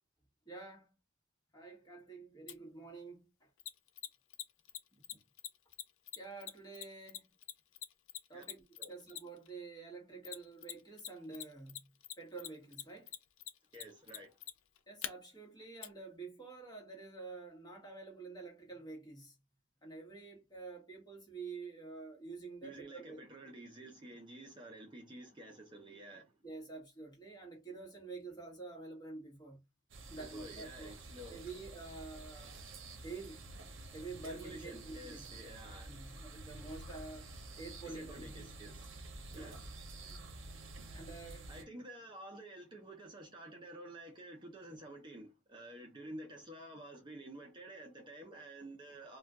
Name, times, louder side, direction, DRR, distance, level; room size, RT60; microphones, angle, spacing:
voice 1, 0.5-0.9 1.5-3.5 6.2-7.2 8.3-11.8 12.2-13.1 14.9-19.3 19.8-23.2 26.4-29.6 30.1-30.9 31.3-32.5 33.0-33.4 33.9-35.3 35.9-37.3 37.6-38.5 39.3-39.6 40.0-40.3 40.9-41.5, right 3 dB, 20° left, 1.2 m, -48 dB
Mechanisms, 2.5-2.6 3.6-9.5 10.2-11.1 11.3-15.1 15.8-15.9, left 11 dB, 70° left, 0.4 m, -43 dB
voice 2, 13.7-14.3 22.6-26.3 30.3-31.4 34.2-35.9 37.9-38.9 39.3-39.6 41.5-49.2, right 1 dB, 25° right, 0.6 m, -50 dB
sound 1, 29.9-41.6, right 2 dB, 65° right, 0.7 m, -50 dB
2.4 x 2.3 x 3.5 m
head